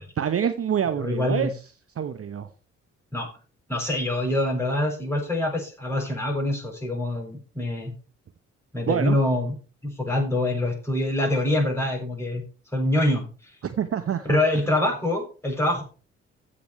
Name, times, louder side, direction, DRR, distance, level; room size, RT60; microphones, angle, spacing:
voice 1, 0.2-1.6 2.0-2.5 8.9-9.2 13.6-14.4, right 8 dB, 40° right, 11 dB, 0.9 m, -26 dB
voice 2, 0.9-1.5 3.1-3.3 3.7-7.9 8.7-9.5 9.8-12.4 12.7-13.2 14.2-15.8, left 1 dB, 5° left, 1 dB, 6.5 m, -25 dB
15.0 x 5.2 x 4.6 m, 0.36 s
figure-of-eight pair, 40°, 37 cm